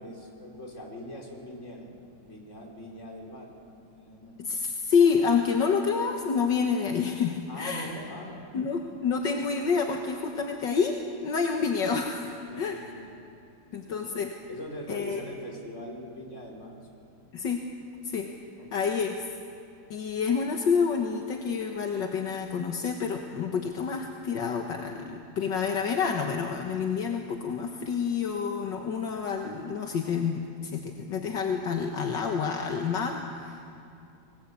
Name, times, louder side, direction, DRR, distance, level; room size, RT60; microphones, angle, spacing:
voice 1, 0.0-1.9 2.2-3.5 3.9-4.4 7.5-8.7 12.5-13.1 13.9-14.1 14.5-16.8 17.0-17.2 18.6-18.9, left 1 dB, 40° left, 0 dB, 4.9 m, -42 dB
voice 2, 4.4-7.9 8.5-12.9 13.7-14.3 14.9-15.2 17.3-17.6 18.0-18.3 18.7-19.2 19.9-33.7, left 6 dB, 75° left, 2 dB, 2.0 m, -28 dB
29.5 x 20.5 x 8.4 m, 2.5 s
omnidirectional pair, 2.0 m